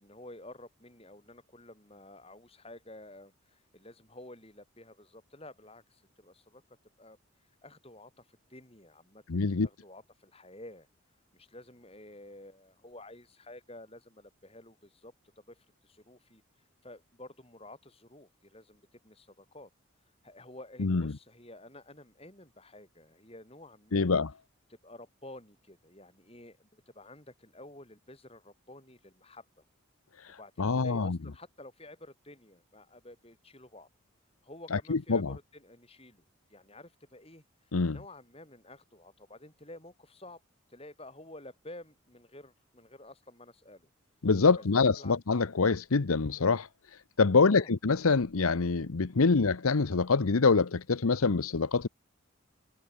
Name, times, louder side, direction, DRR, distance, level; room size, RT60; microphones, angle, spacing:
voice 1, 0.0-6.6 7.0-7.2 7.6-10.9 11.3-16.4 16.8-19.7 20.2-24.1 24.7-29.6 30.4-33.9 34.4-36.2 36.5-37.4 37.9-40.4 40.7-43.9 44.6-45.2 47.4-47.7 49.3-49.4, left 1 dB, 25° left, 7.7 m, -51 dB
voice 2, 9.3-9.7 20.8-21.0 23.9-24.3 30.6-31.2 34.7-35.3 37.7-38.0 44.2-46.7 47.2-51.9, left 4 dB, 85° left, 0.8 m, -25 dB
head